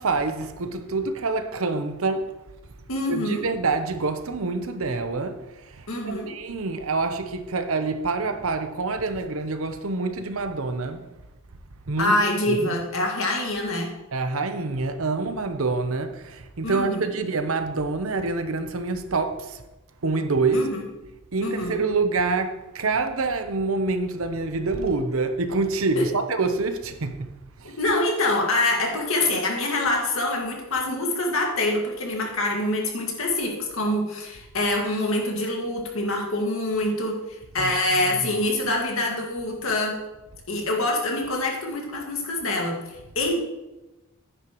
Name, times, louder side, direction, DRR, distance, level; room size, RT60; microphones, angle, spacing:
voice 1, 0.0-2.3 3.1-11.0 11.9-12.2 12.5-12.8 14.1-19.6 20.0-20.7 21.3-27.3 27.6-27.8 37.6-38.3, right 3 dB, 70° right, 0.8 m, -26 dB
voice 2, 2.9-3.4 5.9-6.3 12.0-13.9 16.6-17.1 20.5-20.8 21.4-21.8 26.0-26.1 27.8-40.0 40.5-43.4, left 2 dB, 65° left, 2.0 m, -25 dB
10.5 x 9.8 x 3.1 m
head